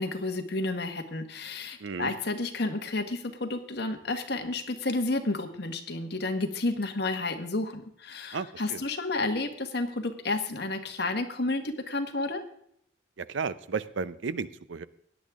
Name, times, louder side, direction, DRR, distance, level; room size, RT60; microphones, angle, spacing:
voice 1, 0.0-12.4, left 2 dB, 60° left, 6 dB, 1.4 m, -31 dB
voice 2, 1.8-2.1 8.3-8.8 13.2-14.9, right 5 dB, 80° right, 16 dB, 0.6 m, -33 dB
17.0 x 10.5 x 3.6 m, 0.68 s
head